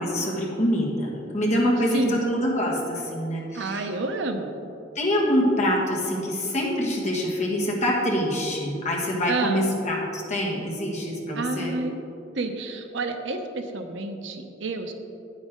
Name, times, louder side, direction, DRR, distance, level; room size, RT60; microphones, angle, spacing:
voice 1, 0.0-3.8 4.9-11.7, equal, 35° left, -2 dB, 1.6 m, -25 dB
voice 2, 3.5-4.6 9.3-9.6 11.4-11.9 12.3-14.9, right 3 dB, 70° right, 6 dB, 0.8 m, -29 dB
9.4 x 9.4 x 3.7 m, 2.8 s
head